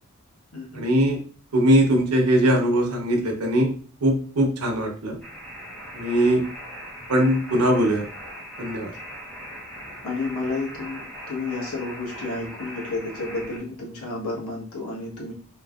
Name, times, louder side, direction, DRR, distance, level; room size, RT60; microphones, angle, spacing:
voice 1, 0.7-1.2 1.5-3.7 4.0-5.2 5.9-6.4 7.1-8.0 8.6-8.9, right 1 dB, 80° right, 2 dB, 0.8 m, -20 dB
sound 1, 5.2-13.6, equal, 5° left, 0.8 m, -40 dB
voice 2, 10.0-15.3, left 3 dB, 75° left, -2 dB, 1.0 m, -31 dB
3.1 x 2.6 x 2.3 m, 0.41 s
head